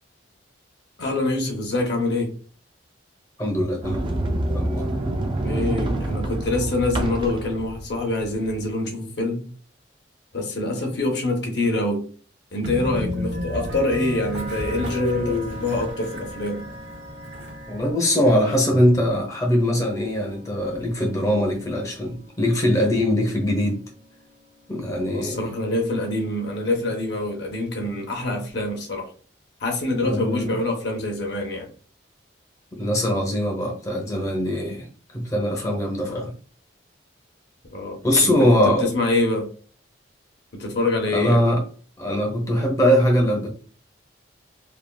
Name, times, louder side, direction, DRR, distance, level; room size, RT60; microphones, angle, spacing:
voice 1, 1.0-2.3 5.4-9.5 10.3-12.0 12.5-16.6 25.1-29.1 29.6-31.7 36.0-36.2 37.7-38.3 38.6-39.5 40.6-41.4, left 2 dB, 60° left, 0.7 m, -25 dB
voice 2, 3.4-4.1 4.5-4.9 17.7-23.8 24.7-25.5 30.0-30.5 32.7-36.3 38.0-38.9 41.1-41.6 42.0-43.5, equal, 15° left, 0.7 m, -22 dB
Sliding door, 3.8-8.7, right 1 dB, 25° right, 0.3 m, -26 dB
Train, 12.6-17.9, left 1 dB, 60° right, 1.2 m, -32 dB
sound 1, 13.3-27.2, right 1 dB, 90° right, 1.1 m, -43 dB
3.3 x 2.3 x 2.2 m
head